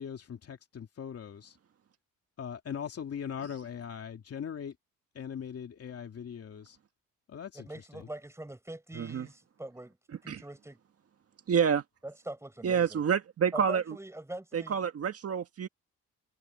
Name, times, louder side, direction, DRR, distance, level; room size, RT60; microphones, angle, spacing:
voice 1, 0.0-1.5 2.4-4.7 5.1-6.8 7.3-7.7 7.9-8.0, left 8 dB, 50° left, 2.7 m, -40 dB
voice 2, 7.5-10.0 10.2-10.8 12.0-13.0 13.5-14.8, right 1 dB, 10° right, 5.9 m, -43 dB
voice 3, 11.5-11.8 12.6-13.8 14.5-15.7, right 7 dB, 50° right, 1.7 m, -28 dB
cardioid pair, 90°, 30 cm